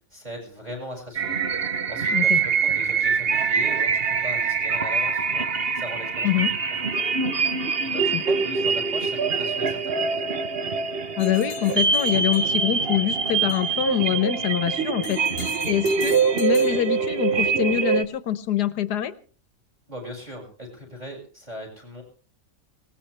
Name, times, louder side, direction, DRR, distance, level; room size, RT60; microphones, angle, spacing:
voice 1, 0.1-1.4 1.9-5.5 5.7-6.4 7.9-10.3 19.9-22.0, equal, 25° right, 3 dB, 6.9 m, -39 dB
sound 1, 1.1-18.0, right 5 dB, 40° right, 1.1 m, -24 dB
voice 2, 11.2-15.2 15.7-19.1, left 12 dB, 80° left, 13 dB, 1.6 m, -25 dB
sound 2, 11.2-12.9 13.5-13.8 15.0-17.3, left 9 dB, 60° left, 1.3 m, -40 dB
20.0 x 19.0 x 3.4 m, 0.41 s
omnidirectional pair, 1.7 m